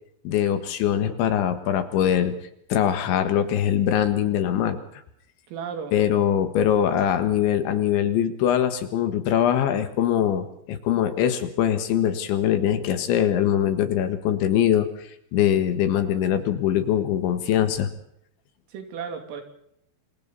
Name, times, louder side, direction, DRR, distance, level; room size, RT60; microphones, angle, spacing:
voice 1, 0.3-2.4 2.7-4.8 5.9-17.9, left 10 dB, 70° left, 9 dB, 3.7 m, -22 dB
voice 2, 5.5-5.9 18.7-19.4, right 6 dB, 80° right, 5 dB, 5.6 m, -34 dB
27.0 x 26.5 x 4.1 m, 0.73 s
omnidirectional pair, 5.9 m